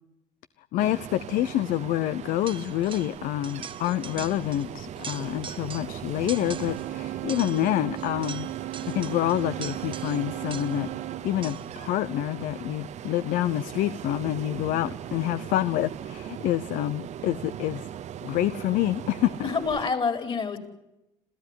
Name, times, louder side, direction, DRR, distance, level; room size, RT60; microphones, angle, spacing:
voice 1, 0.7-8.5 8.9-10.9 11.2-17.9 18.2-19.5, left 14 dB, 75° left, 16 dB, 0.8 m, -27 dB
Ocean, 0.8-19.9, right 10 dB, 55° right, 0.8 m, -39 dB
sound 1, 2.5-3.2 3.4-4.7 5.0-6.0 6.3-6.9 7.3-10.9 11.4-11.8, right 7 dB, 35° right, 1.2 m, -42 dB
Wind instrument woodwind instrument, 6.3-11.3, right 18 dB, 85° right, 1.0 m, -37 dB
voice 2, 19.4-20.6, left 5 dB, 40° left, 8 dB, 4.8 m, -27 dB
27.5 x 15.0 x 10.0 m, 0.93 s
cardioid pair, 95°, 14 cm